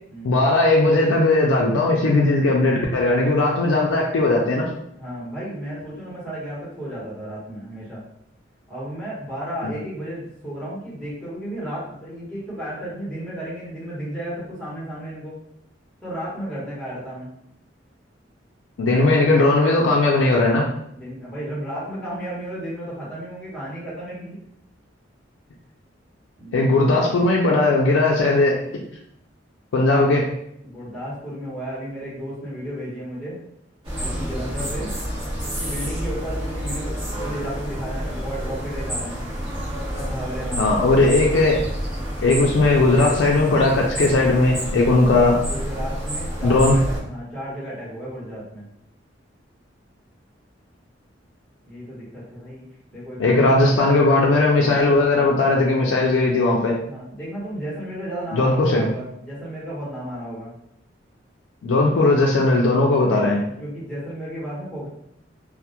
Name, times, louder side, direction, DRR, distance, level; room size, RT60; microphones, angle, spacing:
voice 1, 0.2-4.7 9.6-9.7 18.8-20.7 26.5-28.9 29.7-30.3 40.6-41.6 42.2-45.4 46.4-46.8 53.2-56.7 58.3-58.9 61.6-63.4, left 2 dB, 80° left, -3 dB, 0.4 m, -18 dB
voice 2, 4.9-8.0 8.7-15.3 16.0-17.3 20.9-24.4 26.4-26.6 30.6-33.4 34.0-35.0 35.6-39.2 39.9-40.8 45.5-48.7 51.6-52.7 52.9-53.6 56.9-60.5 63.4-64.9, equal, 5° left, -8 dB, 0.9 m, -33 dB
sound 1, 33.8-47.0, equal, 30° right, 0.8 m, -29 dB
2.2 x 2.0 x 2.8 m, 0.74 s
head